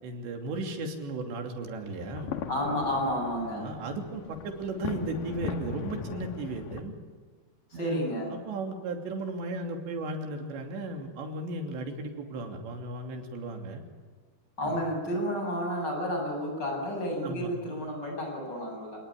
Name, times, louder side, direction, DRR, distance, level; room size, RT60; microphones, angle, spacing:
voice 1, 0.0-2.4 3.5-6.9 7.7-13.8 14.6-14.8 17.2-17.5, right 2 dB, 80° right, 3 dB, 5.1 m, -35 dB
sound 1, 1.9-6.8, left 6 dB, 60° left, 2.9 m, -39 dB
voice 2, 2.5-3.7 7.8-8.3 14.6-19.0, equal, 20° left, 1 dB, 8.4 m, -31 dB
28.0 x 19.0 x 9.9 m, 1.5 s
omnidirectional pair, 5.0 m